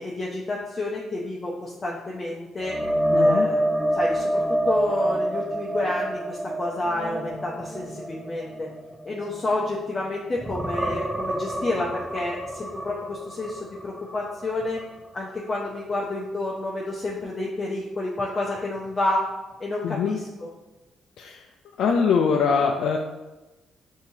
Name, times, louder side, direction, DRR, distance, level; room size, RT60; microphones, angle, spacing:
voice 1, 0.0-2.8 3.1-3.6 3.9-8.7 9.0-14.8 15.1-19.2 19.6-20.5, left 2 dB, 30° left, -4 dB, 0.6 m, -29 dB
sound 1, 2.6-10.0 10.4-14.2 14.6-14.8 18.2-18.3, right 1 dB, 10° right, 0.5 m, -27 dB
voice 2, 3.1-3.5 19.8-20.2 21.2-21.4 21.8-23.0, left 6 dB, 75° left, 2 dB, 0.3 m, -22 dB
5.8 x 2.7 x 2.7 m, 1.1 s
cardioid pair, 90°, 0 cm